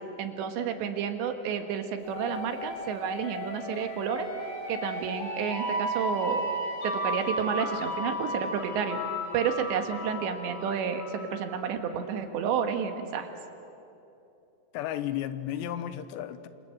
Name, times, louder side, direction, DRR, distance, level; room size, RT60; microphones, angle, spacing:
voice 1, 0.2-4.3 4.7-6.5 6.8-9.0 9.3-13.3, right 7 dB, 85° right, 6 dB, 3.8 m, -30 dB
sound 1, 2.0-11.7, equal, 50° left, 6.7 m, -35 dB
voice 2, 14.7-16.5, left 11 dB, 80° left, 12 dB, 3.1 m, -33 dB
28.0 x 25.5 x 7.7 m, 2.9 s
omnidirectional pair, 5.0 m